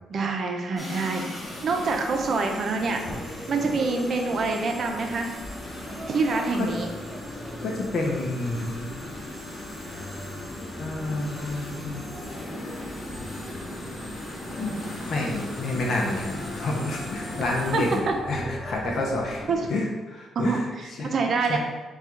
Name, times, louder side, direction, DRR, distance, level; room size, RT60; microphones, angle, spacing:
voice 1, 0.1-3.0 3.5-5.3 6.1-6.9 17.7-18.1 19.5-19.7 20.3-21.6, right 4 dB, 55° right, 3 dB, 0.6 m, -26 dB
sound 1, 0.8-18.0, left 1 dB, 35° left, 1.3 m, -38 dB
sound 2, 1.4-19.7, equal, 5° left, 0.6 m, -41 dB
voice 2, 7.6-8.9 10.8-12.0 14.5-14.8 15.1-19.4 19.7-20.7 21.0-21.1 21.5-21.6, left 2 dB, 60° left, -1 dB, 0.6 m, -29 dB
4.2 x 2.4 x 3.7 m, 1.2 s
cardioid pair, 90°, 0 cm